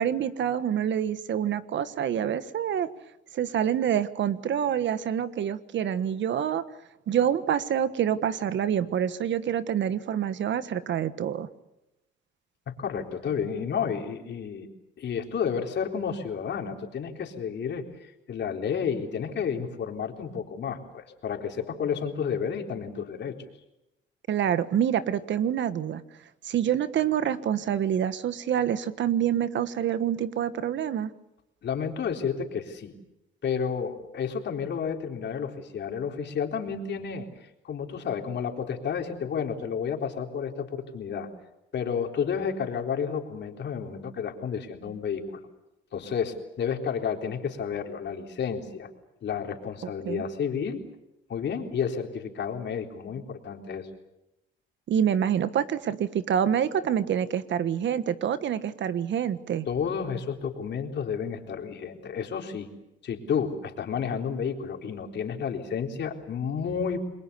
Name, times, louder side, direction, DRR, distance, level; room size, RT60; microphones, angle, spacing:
voice 1, 0.0-2.9 3.3-6.6 7.1-11.5 24.3-26.0 26.4-31.1 50.0-50.2 54.9-59.7, right 9 dB, 65° right, 13 dB, 1.5 m, -27 dB
voice 2, 12.8-14.7 15.0-23.4 31.6-32.9 33.4-37.3 37.6-41.3 41.7-45.4 45.9-48.9 49.2-50.8 51.3-53.9 59.7-62.7 63.0-67.0, left 7 dB, 60° left, 3 dB, 3.9 m, -31 dB
29.5 x 22.0 x 7.0 m, 0.90 s
cardioid pair, 90°, 20 cm